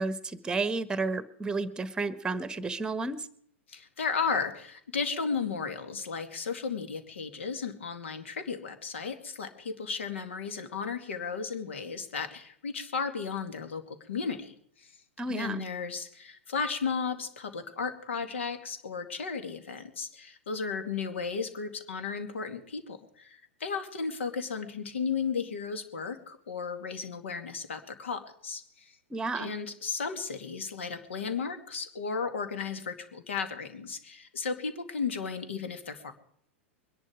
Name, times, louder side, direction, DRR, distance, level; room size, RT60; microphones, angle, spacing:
voice 1, 0.0-3.3 15.2-15.6 29.1-29.5, right 3 dB, 10° right, 15 dB, 1.2 m, -32 dB
voice 2, 3.7-14.9 15.3-29.0 29.3-36.1, left 5 dB, 70° left, 9 dB, 2.3 m, -34 dB
23.0 x 11.0 x 5.0 m, 0.66 s
figure-of-eight pair, 95°, 7 cm